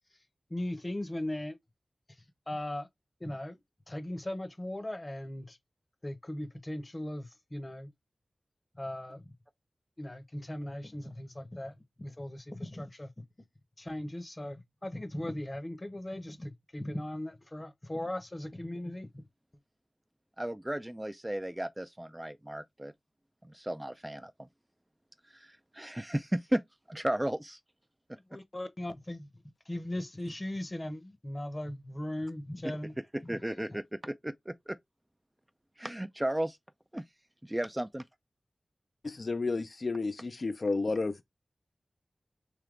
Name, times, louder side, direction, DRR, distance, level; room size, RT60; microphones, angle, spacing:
voice 1, 0.5-1.6 2.5-2.9 3.2-3.6 3.9-5.6 6.0-7.9 8.8-9.2 10.0-13.1 13.8-19.3 28.3-29.3 29.7-32.9, left 1 dB, 30° left, 0.8 m, -38 dB
voice 2, 20.4-22.9 23.4-24.5 25.3-26.6 26.9-27.6 32.6-32.7 33.1-34.8 35.8-36.6 36.9-37.0 37.4-38.0, right 1 dB, 15° right, 0.3 m, -34 dB
voice 3, 39.0-41.2, left 3 dB, 55° left, 0.4 m, -31 dB
3.4 x 2.8 x 3.7 m
wide cardioid pair, 65°, 0 cm